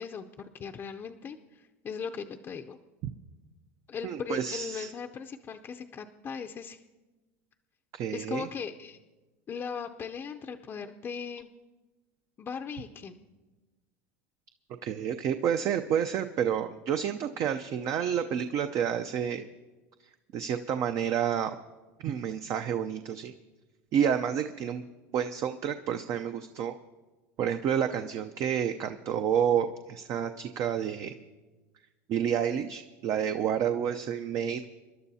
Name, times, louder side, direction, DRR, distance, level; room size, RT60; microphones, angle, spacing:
voice 1, 0.0-2.8 3.9-6.8 8.1-9.0 9.5-11.5 12.4-13.2, left 6 dB, 30° left, 5 dB, 0.6 m, -38 dB
voice 2, 4.0-4.9 7.9-8.5 14.8-19.4 20.3-21.6 22.0-23.3 23.9-24.8 25.1-26.7 27.4-31.2 32.1-34.6, right 8 dB, 45° right, 8 dB, 0.6 m, -29 dB
28.0 x 11.5 x 2.8 m, 1.2 s
supercardioid pair, 110°, 8 cm